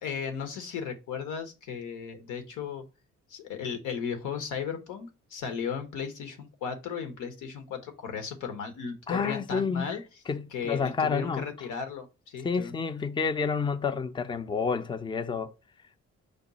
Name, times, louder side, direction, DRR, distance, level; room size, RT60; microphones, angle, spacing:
voice 1, 0.0-2.8 3.3-10.0 10.5-12.7, left 6 dB, 90° left, 1.0 m, -35 dB
voice 2, 9.1-10.0 10.3-11.5 12.4-15.5, left 5 dB, 15° left, 0.4 m, -29 dB
5.1 x 2.3 x 4.0 m
cardioid pair, 90°, 30 cm